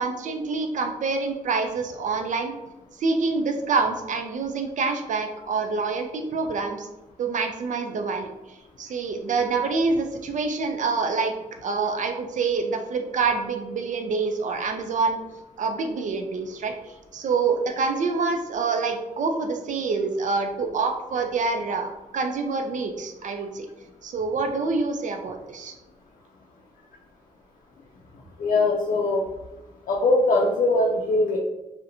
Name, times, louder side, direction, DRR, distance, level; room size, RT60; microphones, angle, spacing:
voice 1, 0.0-2.5 3.0-6.9 7.2-8.3 8.8-11.3 11.6-15.2 15.6-16.7 17.1-23.7 24.0-25.7, right 4 dB, 65° right, 5 dB, 0.4 m, -26 dB
voice 2, 28.4-29.2 29.9-31.4, left 2 dB, 80° left, -1 dB, 0.4 m, -21 dB
2.5 x 2.1 x 2.8 m, 1.0 s
cardioid pair, 90°, 14 cm